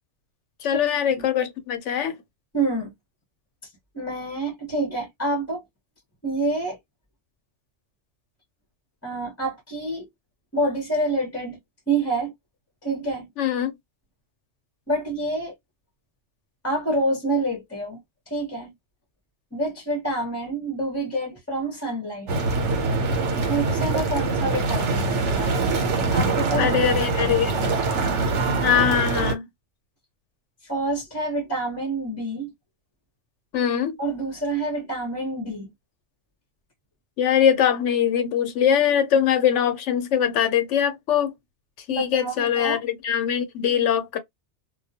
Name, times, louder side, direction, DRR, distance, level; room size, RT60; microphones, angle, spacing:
voice 1, 0.6-2.1 13.4-13.7 26.6-27.6 28.6-29.5 33.5-34.0 37.2-41.3 41.9-44.2, left 9 dB, 90° left, 1.0 m, -22 dB
voice 2, 2.5-2.9 3.6-5.6 6.2-6.8 9.0-10.1 10.5-11.6 11.9-12.3 12.8-13.3 14.9-15.5 16.6-18.0 18.3-18.7 19.5-22.5 23.3-25.6 26.1-27.8 30.6-32.5 34.0-35.7 41.9-42.8, right 2 dB, 15° left, 0.7 m, -27 dB
sound 1, 22.3-29.4, right 3 dB, 85° right, 1.0 m, -24 dB
2.3 x 2.1 x 2.7 m
omnidirectional pair, 1.2 m